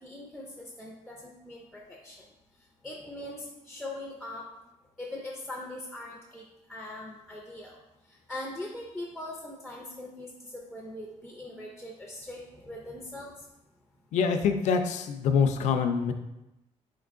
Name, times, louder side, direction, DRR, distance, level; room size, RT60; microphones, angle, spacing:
voice 1, 0.0-2.2 2.8-4.5 5.0-6.4 6.7-7.8 8.3-13.3, left 1 dB, ahead, -1 dB, 0.4 m, -41 dB
voice 2, 14.1-16.1, left 6 dB, 70° left, 7 dB, 0.5 m, -25 dB
4.5 x 4.4 x 2.5 m, 0.93 s
cardioid pair, 155°, 13 cm